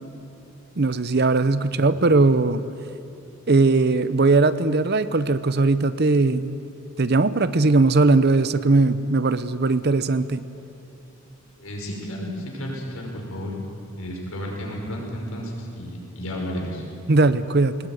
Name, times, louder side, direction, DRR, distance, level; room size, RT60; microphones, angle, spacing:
voice 1, 0.8-2.6 3.5-6.6 7.0-10.5 17.1-17.8, right 3 dB, 45° right, 14 dB, 0.7 m, -19 dB
voice 2, 11.6-13.5 14.0-16.8, equal, 75° left, -1 dB, 5.7 m, -32 dB
21.0 x 19.5 x 9.6 m, 2.8 s
head